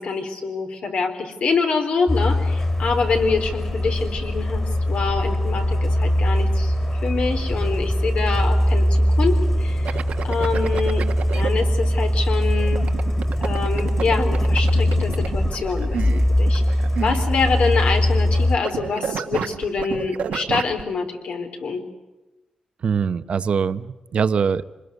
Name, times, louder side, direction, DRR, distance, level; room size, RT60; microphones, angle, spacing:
voice 1, 0.0-6.7 7.0-10.0 10.2-11.1 11.3-12.9 13.4-16.6 17.0-21.8, left 4 dB, 75° left, 4 dB, 3.9 m, -25 dB
Truck, 2.1-18.6, left 1 dB, 20° left, 2.5 m, -21 dB
sound 1, 9.8-11.5 12.7-18.4 18.6-20.8, right 7 dB, 85° right, 1.3 m, -30 dB
voice 2, 22.8-24.6, right 6 dB, 60° right, 12 dB, 0.9 m, -22 dB
26.5 x 21.5 x 8.2 m, 1.1 s
wide cardioid pair, 130°, 2 cm